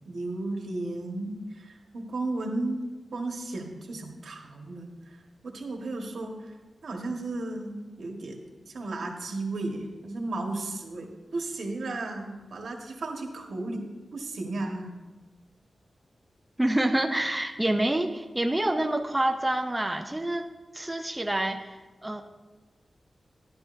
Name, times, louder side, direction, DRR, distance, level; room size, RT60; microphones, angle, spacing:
voice 1, 0.0-6.5 6.8-14.9, right 2 dB, 80° right, 2 dB, 1.3 m, -34 dB
voice 2, 16.6-20.5 20.7-22.2, right 1 dB, 10° right, 4 dB, 0.5 m, -27 dB
12.0 x 11.5 x 2.6 m, 1.2 s
wide cardioid pair, 145°, 0 cm